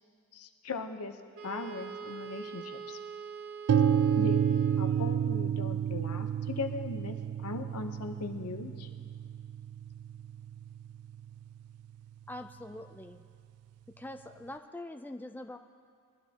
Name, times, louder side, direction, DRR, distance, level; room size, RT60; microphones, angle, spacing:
voice 1, 0.3-1.2 1.4-3.0 4.2-8.9, left 3 dB, 85° left, 6 dB, 0.9 m, -39 dB
Wind instrument woodwind instrument, 1.4-5.4, right 6 dB, 60° right, 0.9 m, -44 dB
sound 1, 3.7-11.6, right 8 dB, 75° right, 0.3 m, -30 dB
voice 2, 12.3-13.2 14.0-15.6, left 1 dB, 10° left, 6 dB, 0.3 m, -43 dB
22.0 x 12.0 x 2.9 m, 2.2 s
head